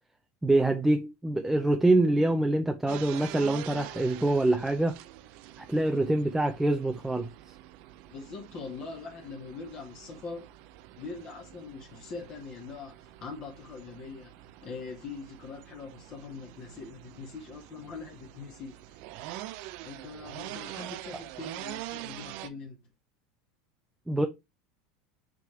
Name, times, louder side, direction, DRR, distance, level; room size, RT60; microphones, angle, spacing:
voice 1, 0.4-5.0 5.6-7.3 24.1-24.3, right 2 dB, 5° right, 0.6 m, -25 dB
sound 1, 2.9-22.5, right 14 dB, 60° right, 0.6 m, -45 dB
voice 2, 8.1-10.5 11.0-19.0 19.8-22.8, left 4 dB, 40° left, 2.0 m, -42 dB
6.0 x 3.8 x 4.4 m
supercardioid pair, 125°, 2 cm